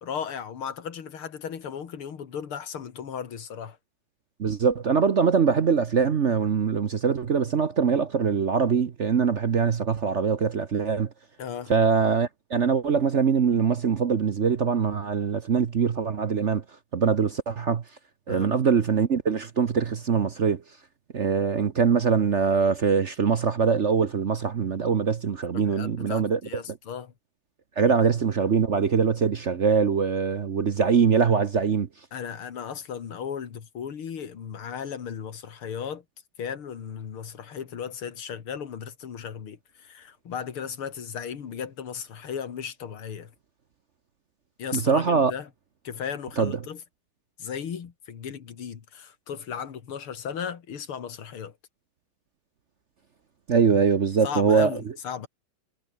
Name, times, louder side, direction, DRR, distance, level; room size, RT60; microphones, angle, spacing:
voice 1, 0.0-3.8 11.4-11.7 18.3-18.6 25.5-27.1 27.8-27.9 32.1-36.0 36.4-43.3 44.6-45.5 45.8-46.8 47.4-51.5 54.2-55.3, left 7 dB, 90° left, 2.9 m, -36 dB
voice 2, 4.4-11.1 11.7-16.6 16.9-17.8 18.3-20.6 21.1-26.4 27.8-31.9 44.7-45.3 46.4-46.5 53.5-54.8, right 6 dB, 50° right, 0.9 m, -23 dB
omnidirectional pair, 2.3 m